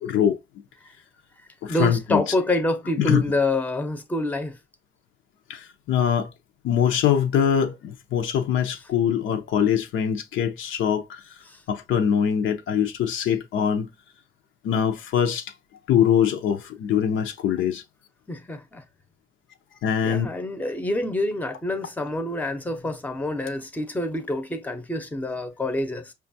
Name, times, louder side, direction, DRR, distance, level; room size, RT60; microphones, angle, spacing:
voice 1, 0.0-0.4 1.6-2.3 3.0-3.2 5.5-6.3 6.6-11.2 11.7-13.9 14.6-15.4 15.9-17.8 19.8-20.3, left 8 dB, 75° left, 0.6 m, -23 dB
voice 2, 1.7-4.6 11.5-11.6 18.3-18.8 20.0-26.1, left 1 dB, 10° left, 0.6 m, -27 dB
5.0 x 2.3 x 2.6 m
cardioid pair, 90°, 20 cm